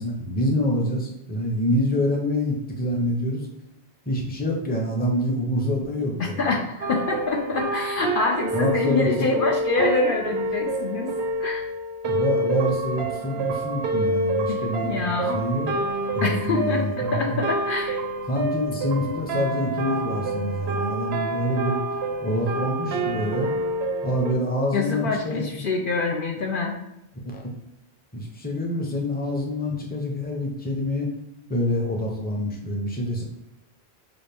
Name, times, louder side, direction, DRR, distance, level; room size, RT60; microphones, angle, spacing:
voice 1, 0.0-3.5 4.1-6.6 8.5-9.3 12.1-15.7 16.1-17.4 18.3-21.8 22.2-23.5 24.0-25.4 27.2-27.4 28.1-31.1 31.5-33.2, left 1 dB, 10° left, 0 dB, 0.6 m, -26 dB
voice 2, 6.4-11.1 11.4-11.6 14.5-15.4 16.2-16.9 17.1-18.0 24.7-26.8, left 3 dB, 60° left, 1 dB, 0.7 m, -25 dB
sound 1, 6.8-24.3, right 2 dB, 75° right, 0.8 m, -28 dB
5.8 x 2.5 x 3.4 m, 0.86 s
omnidirectional pair, 1.1 m